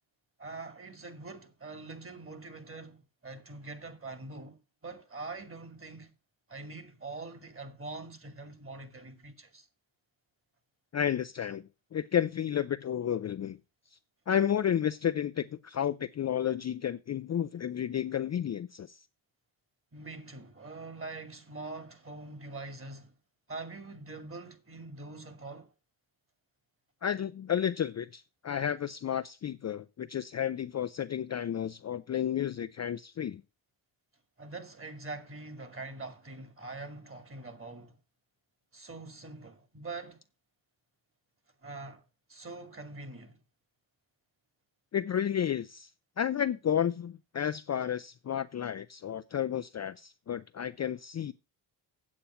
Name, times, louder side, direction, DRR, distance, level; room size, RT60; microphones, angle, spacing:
voice 1, 0.4-6.1 6.5-9.7 19.9-23.1 23.5-25.7 34.4-38.0 38.7-40.2 41.6-42.0 42.3-43.4, right 3 dB, 25° right, 2.2 m, -44 dB
voice 2, 10.9-11.6 11.9-13.6 14.3-19.0 27.0-33.4 44.9-45.9 46.2-51.3, left 9 dB, 35° left, 0.5 m, -31 dB
8.7 x 7.6 x 5.6 m
supercardioid pair, 65°, 50 cm